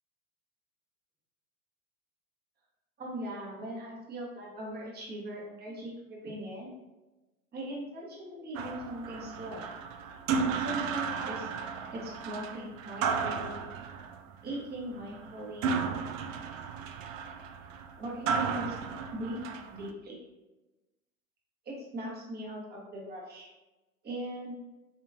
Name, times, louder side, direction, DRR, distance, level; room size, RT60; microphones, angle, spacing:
voice 1, 3.0-6.7 7.5-9.7 10.6-11.5 11.9-13.6 14.4-15.8 18.0-18.8 19.1-20.2 21.6-23.5 24.0-24.5, right 1 dB, 25° right, -3 dB, 1.1 m, -40 dB
sound 1, 8.6-19.9, right 5 dB, 65° right, 0.5 m, -34 dB
3.8 x 2.8 x 2.6 m, 1.1 s
figure-of-eight pair, 85°, 42 cm